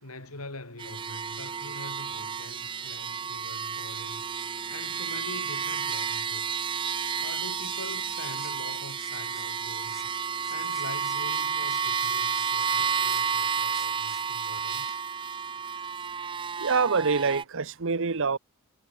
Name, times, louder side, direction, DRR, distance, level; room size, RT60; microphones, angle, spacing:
voice 1, 0.0-4.2 4.7-6.7 7.2-10.1 10.5-15.1, left 2 dB, 80° left, 5.0 m, -44 dB
sound 1, 0.8-17.4, right 6 dB, 25° right, 0.4 m, -31 dB
sound 2, 7.5-9.5 9.8-16.1, equal, ahead, 6.4 m, -53 dB
voice 2, 16.6-18.4, right 5 dB, 65° right, 1.0 m, -25 dB
head